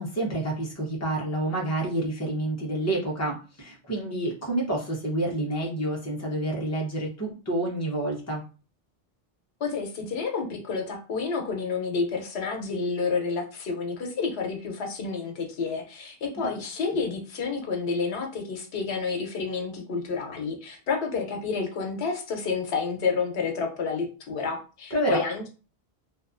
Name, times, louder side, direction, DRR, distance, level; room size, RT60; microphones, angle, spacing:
voice 1, 0.0-8.4 24.9-25.2, right 1 dB, 20° left, -2 dB, 0.6 m, -28 dB
voice 2, 9.6-25.5, left 4 dB, 90° left, 4 dB, 0.9 m, -29 dB
2.6 x 2.3 x 2.4 m, 0.34 s
omnidirectional pair, 1.1 m